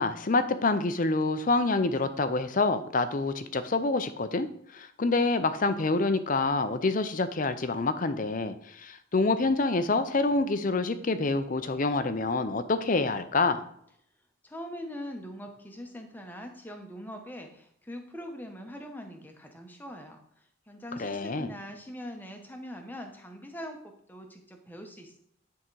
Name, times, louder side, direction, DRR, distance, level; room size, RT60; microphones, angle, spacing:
voice 1, 0.0-4.5 4.7-13.6 21.0-21.5, left 3 dB, 40° left, 11 dB, 0.5 m, -27 dB
voice 2, 14.4-20.2 20.7-25.2, equal, 10° left, 4 dB, 0.9 m, -42 dB
10.0 x 3.7 x 4.6 m, 0.69 s
head